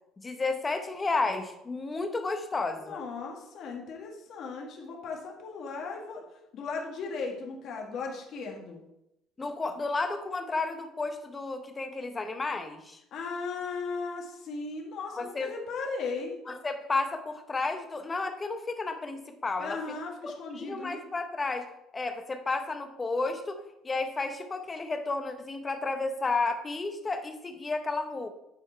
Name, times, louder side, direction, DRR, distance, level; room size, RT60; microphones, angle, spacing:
voice 1, 0.2-3.0 9.4-13.0 15.1-15.5 16.5-19.8 20.5-21.7 21.9-28.3, left 3 dB, 20° left, 7 dB, 0.9 m, -32 dB
voice 2, 2.7-6.2 6.5-8.8 13.1-16.4 19.6-21.0, left 4 dB, 55° left, 0 dB, 1.7 m, -37 dB
9.6 x 4.5 x 4.5 m, 0.85 s
cardioid pair, 140°, 0 cm